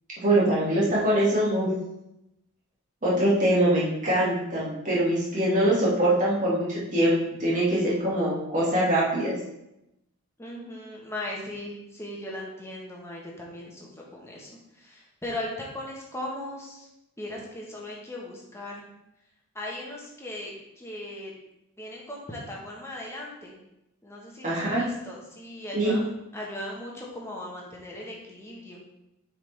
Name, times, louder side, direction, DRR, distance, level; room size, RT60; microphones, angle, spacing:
voice 1, 0.2-1.7 3.0-6.7 6.9-9.3 24.4-24.8 25.7-25.9, right 1 dB, 35° right, -7 dB, 2.1 m, -23 dB
voice 2, 10.4-14.5 14.8-16.9 17.2-18.8 19.5-21.3 21.8-23.5 24.0-28.8, left 1 dB, 10° left, -3 dB, 1.3 m, -38 dB
7.4 x 4.8 x 3.4 m, 0.88 s
head